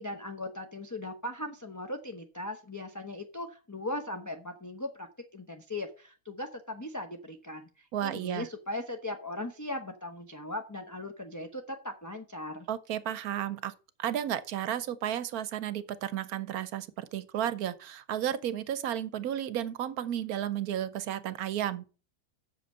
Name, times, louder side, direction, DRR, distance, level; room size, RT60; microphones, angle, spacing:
voice 1, 0.0-5.1 5.3-12.7, left 1 dB, 15° left, 0.8 m, -38 dB
voice 2, 7.9-8.5 12.7-13.7 14.0-21.8, right 10 dB, 75° right, 1.2 m, -33 dB
7.8 x 6.8 x 5.5 m
omnidirectional pair, 1.6 m